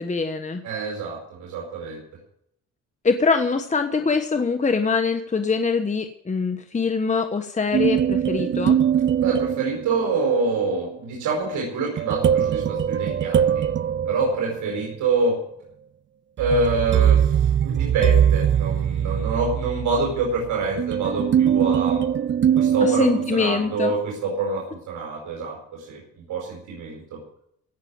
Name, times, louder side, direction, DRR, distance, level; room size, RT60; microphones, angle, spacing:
voice 1, 0.0-0.6 3.0-8.8 22.8-23.9, left 4 dB, 25° left, 7 dB, 1.3 m, -23 dB
voice 2, 0.6-2.0 9.1-13.7 14.1-15.4 16.4-22.0 22.5-27.2, right 3 dB, 80° right, -1 dB, 4.9 m, -26 dB
sound 1, 7.7-10.3 12.0-14.9 16.4-23.7, right 9 dB, 40° right, 0.5 m, -22 dB
17.5 x 6.9 x 9.5 m, 0.72 s
cardioid pair, 90°, 30 cm